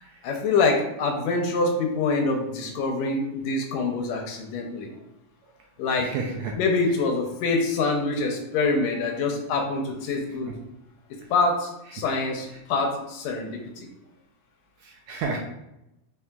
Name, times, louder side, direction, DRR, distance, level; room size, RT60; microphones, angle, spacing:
voice 1, 0.2-4.9 5.8-6.1 6.6-10.5 11.3-13.9, left 3 dB, 75° left, 2 dB, 1.7 m, -25 dB
voice 2, 6.0-6.5 10.2-10.5 12.5-12.6 14.8-15.4, right 4 dB, 80° right, 0 dB, 1.7 m, -32 dB
4.6 x 3.9 x 2.3 m, 0.89 s
omnidirectional pair, 3.4 m